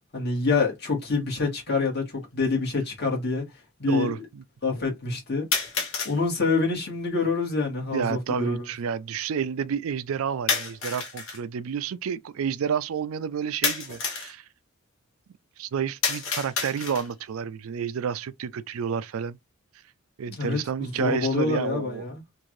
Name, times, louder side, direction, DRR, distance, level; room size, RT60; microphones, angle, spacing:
voice 1, 0.1-3.4 3.8-4.2 4.6-5.5 6.1-8.7 20.3-22.2, left 4 dB, 55° left, 1.9 m, -26 dB
sound 1, 1.2-1.3 2.2-2.3 5.5-6.2 10.5-11.4 13.6-14.3 16.0-17.2, left 5 dB, 75° left, 1.2 m, -29 dB
voice 2, 3.9-4.4 7.9-14.4 15.6-19.4 20.2-22.0, right 7 dB, 85° right, 0.4 m, -30 dB
3.6 x 2.6 x 3.1 m
head